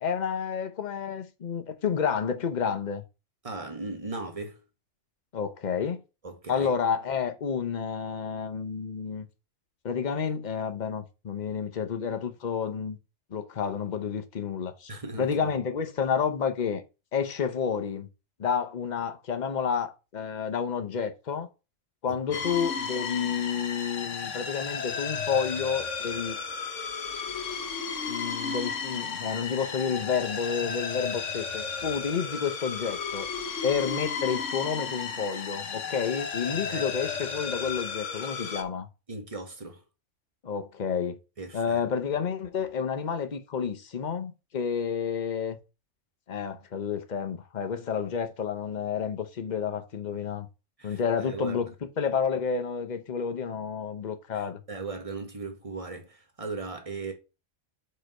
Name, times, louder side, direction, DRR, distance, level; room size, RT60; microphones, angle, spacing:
voice 1, 0.0-3.0 5.3-6.0 6.5-9.3 9.8-13.0 13.3-14.9 15.2-16.8 17.1-18.1 18.4-21.5 22.0-26.4 28.1-33.3 33.6-38.9 40.4-41.2 41.5-45.6 46.3-50.5 50.8-51.7 52.0-54.6, left 6 dB, 40° left, 0.9 m, -30 dB
voice 2, 3.4-4.6 6.2-6.7 14.9-15.3 22.1-22.4 36.7-36.8 39.1-39.8 41.4-41.8 50.8-51.0 51.2-51.7 54.3-57.1, right 3 dB, 25° right, 1.5 m, -38 dB
sound 1, 22.3-38.6, left 5 dB, 65° left, 1.4 m, -34 dB
5.5 x 5.0 x 6.5 m
omnidirectional pair, 1.4 m